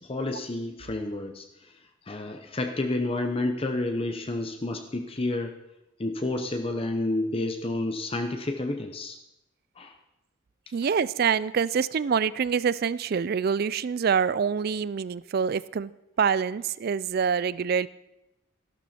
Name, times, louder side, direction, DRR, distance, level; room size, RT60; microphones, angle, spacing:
voice 1, 0.0-1.7 2.1-5.6 6.0-9.2 9.8-9.9, left 2 dB, 30° left, 5 dB, 0.7 m, -30 dB
voice 2, 10.7-15.9 16.2-17.9, right 6 dB, 50° right, 19 dB, 0.4 m, -25 dB
14.0 x 11.5 x 4.3 m, 0.90 s
head